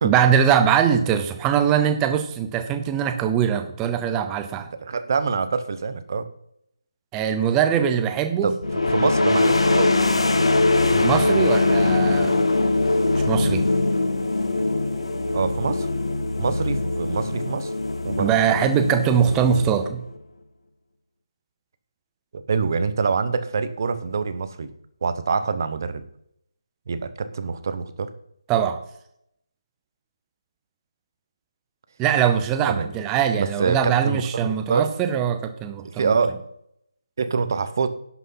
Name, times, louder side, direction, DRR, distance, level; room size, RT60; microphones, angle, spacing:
voice 1, 0.0-4.7 7.1-8.5 11.0-12.4 13.3-13.7 18.2-20.0 28.5-28.8 32.0-36.1, right 8 dB, 10° right, 8 dB, 0.6 m, -22 dB
voice 2, 4.8-6.3 8.4-8.6 8.9-9.9 10.9-11.1 11.3-11.5 15.3-15.9 16.4-17.7 18.0-18.3 22.3-24.7 25.0-26.0 26.9-28.1 32.7-32.9 33.4-34.9 35.8-36.4 37.2-37.9, right 5 dB, 35° right, 11 dB, 0.9 m, -25 dB
sound 1, 8.6-20.2, left 2 dB, 85° left, 1.3 m, -22 dB
11.0 x 6.1 x 5.7 m, 0.74 s
figure-of-eight pair, 170°, 3 cm